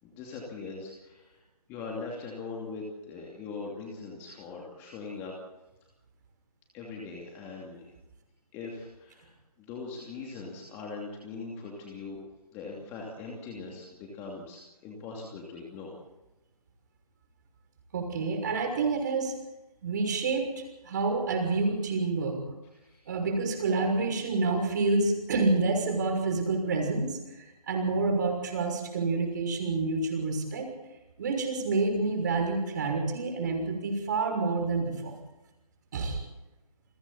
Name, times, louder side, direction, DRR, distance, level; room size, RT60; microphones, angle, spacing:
voice 1, 0.0-1.4 1.7-5.3 6.7-7.9 8.5-12.2 12.5-16.0 22.8-23.1, left 4 dB, 10° left, -1 dB, 2.7 m, -41 dB
voice 2, 17.9-19.3 19.8-20.4 20.8-22.4 23.1-30.7 31.2-35.1 35.9-36.2, right 3 dB, 30° right, 3 dB, 6.2 m, -28 dB
29.5 x 22.5 x 4.3 m, 1.0 s
figure-of-eight pair, 155°, 20 cm